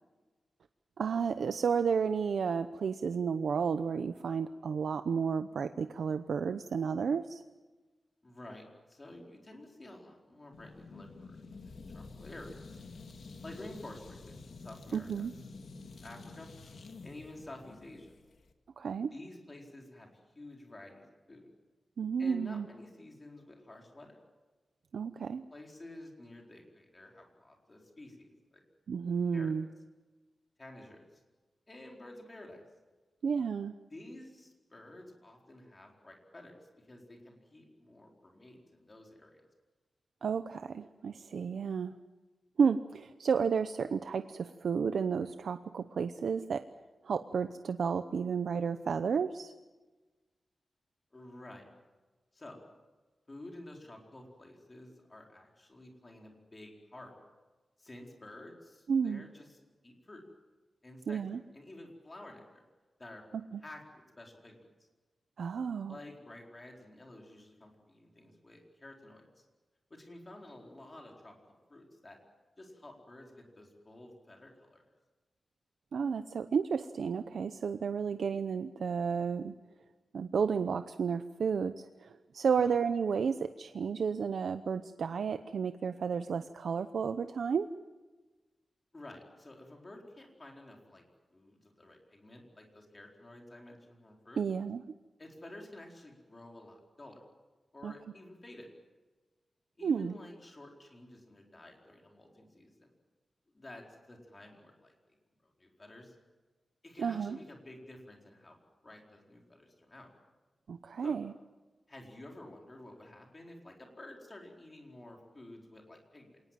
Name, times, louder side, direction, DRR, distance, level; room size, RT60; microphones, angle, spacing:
voice 1, 1.0-7.4 14.9-15.3 18.8-19.1 22.0-22.7 24.9-25.4 28.9-29.7 33.2-33.7 40.2-41.9 42.6-46.7 47.0-49.5 58.9-59.3 61.1-61.4 63.5-63.6 65.4-66.0 75.9-79.5 80.1-87.7 94.4-94.8 97.8-97.9 99.8-100.2 107.0-107.4 110.7-111.3, right 6 dB, 75° right, 9 dB, 0.8 m, -32 dB
voice 2, 8.2-12.8 13.4-15.3 16.0-16.5 17.0-18.2 19.1-21.5 22.2-24.2 25.5-28.6 29.3-29.5 30.6-31.2 31.7-32.6 33.9-39.4 51.1-51.7 52.3-52.6 53.3-57.1 57.8-59.6 59.8-60.2 60.8-61.2 61.5-62.6 63.0-63.2 63.6-64.9 65.9-69.4 69.9-71.4 71.7-72.2 72.6-74.8 82.5-82.7 88.9-91.0 91.3-94.4 95.2-97.2 97.7-98.7 99.8-102.9 103.5-104.9 105.4-106.2 106.8-108.6 108.8-110.1 111.0-111.1 111.9-116.4, left 1 dB, 25° left, 1 dB, 4.5 m, -51 dB
sound 1, 10.5-18.5, left 3 dB, 65° left, 2.2 m, -49 dB
27.5 x 19.0 x 7.6 m, 1.3 s
wide cardioid pair, 170°, 0 cm